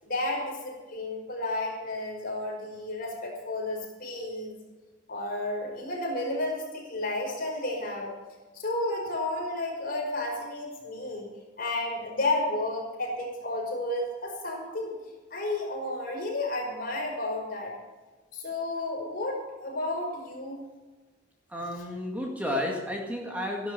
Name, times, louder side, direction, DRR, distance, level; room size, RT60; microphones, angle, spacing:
voice 1, 0.0-4.6 5.1-8.1 8.5-11.3 11.6-15.0 15.3-17.7 18.3-20.7, left 2 dB, 50° left, -1 dB, 5.4 m, -32 dB
voice 2, 21.5-23.7, left 1 dB, 10° right, 0 dB, 2.1 m, -32 dB
15.0 x 11.5 x 6.9 m, 1.3 s
head